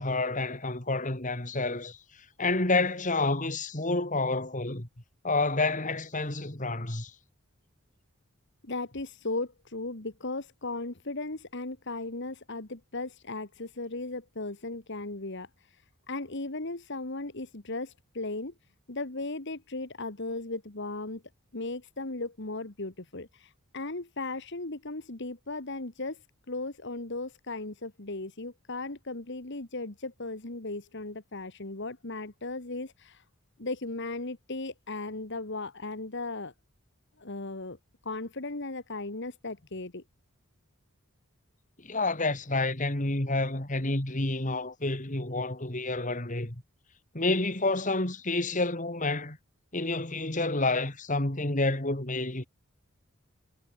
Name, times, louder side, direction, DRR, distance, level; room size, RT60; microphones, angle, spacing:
voice 1, 0.0-2.0 2.4-4.9 5.2-7.1 41.8-46.6 47.1-49.4 49.7-52.5, left 2 dB, 35° left, 2.7 m, -29 dB
voice 2, 8.6-18.5 18.9-21.2 21.5-26.2 26.5-33.2 33.6-36.5 37.2-37.8 38.0-40.0, left 2 dB, 50° left, 1.8 m, -37 dB
head